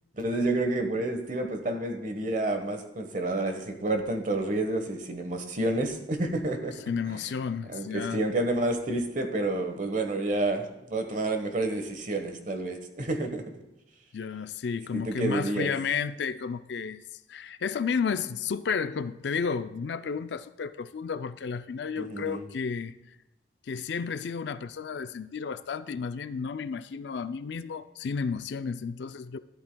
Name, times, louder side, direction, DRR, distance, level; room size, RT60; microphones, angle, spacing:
voice 1, 0.2-6.7 7.1-7.2 7.7-10.6 10.9-13.4 14.9-15.7 22.0-22.4, right 2 dB, 45° right, 6 dB, 1.2 m, -29 dB
voice 2, 6.9-8.2 14.1-17.0 17.3-22.9 23.7-29.4, left 6 dB, 70° left, 12 dB, 0.4 m, -32 dB
13.0 x 12.0 x 2.3 m, 0.94 s
head